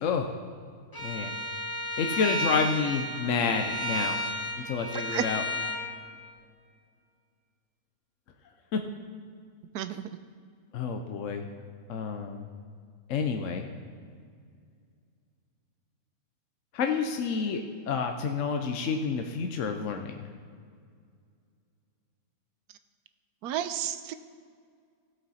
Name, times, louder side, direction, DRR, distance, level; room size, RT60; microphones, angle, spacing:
voice 1, 0.0-0.3 1.0-1.3 2.0-4.2 4.6-5.4 8.7-8.8 10.7-11.4 11.9-12.5 13.1-13.6 16.7-20.1, left 5 dB, 65° left, 5 dB, 1.0 m, -29 dB
Bowed string instrument, 0.9-5.8, equal, 15° left, 0.8 m, -32 dB
voice 2, 9.7-10.1 23.4-24.1, right 10 dB, 90° right, 11 dB, 1.2 m, -31 dB
16.5 x 7.8 x 4.2 m, 2.1 s
omnidirectional pair, 1.6 m